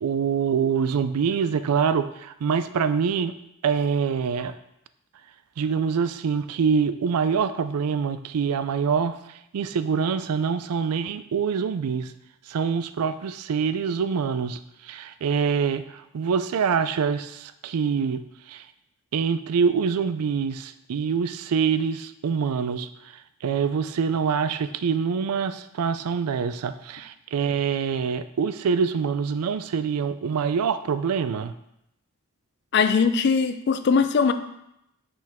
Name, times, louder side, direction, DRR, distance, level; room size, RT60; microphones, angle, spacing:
voice 1, 0.0-3.4 3.6-4.5 5.6-9.2 9.5-12.1 12.5-18.2 18.5-18.6 19.1-22.9 23.4-31.5, right 6 dB, 85° right, 12 dB, 0.4 m, -25 dB
voice 2, 32.7-34.3, left 5 dB, 50° left, 11 dB, 0.4 m, -20 dB
5.8 x 5.0 x 3.5 m, 0.81 s
head